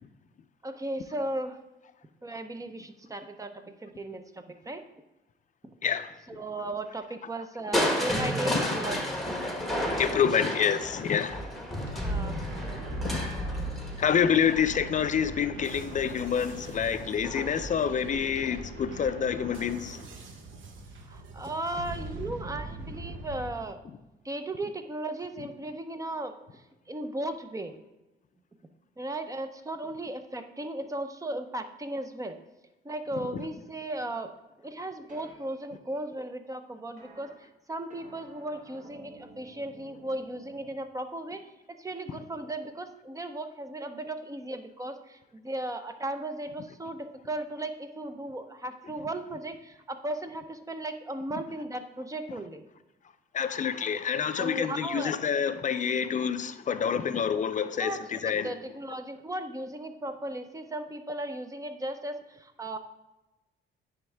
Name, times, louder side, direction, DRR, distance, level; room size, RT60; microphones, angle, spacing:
voice 1, 0.6-1.6 2.2-4.8 6.3-9.2 12.0-12.5 21.1-23.8 24.2-26.3 26.9-27.7 29.0-32.4 32.8-34.3 34.6-37.3 37.7-52.6 54.3-55.2 57.8-58.0 58.3-62.8, right 1 dB, 15° right, 8 dB, 0.6 m, -36 dB
voice 2, 5.8-6.1 8.5-8.7 10.0-11.5 11.8-12.0 13.0-13.3 14.0-20.0 33.3-33.4 53.3-58.5, left 7 dB, 40° left, 11 dB, 0.5 m, -27 dB
Crushing, 7.7-15.7 17.2-17.7 18.2-18.3, equal, ahead, 1.2 m, -32 dB
sound 1, 11.8-23.5, right 2 dB, 75° right, 0.9 m, -43 dB
sound 2, 33.2-33.6 35.1-35.3 37.0-37.3 37.9-40.7, right 2 dB, 40° right, 1.4 m, -52 dB
9.7 x 3.6 x 3.3 m, 1.0 s
cardioid pair, 90°, 20 cm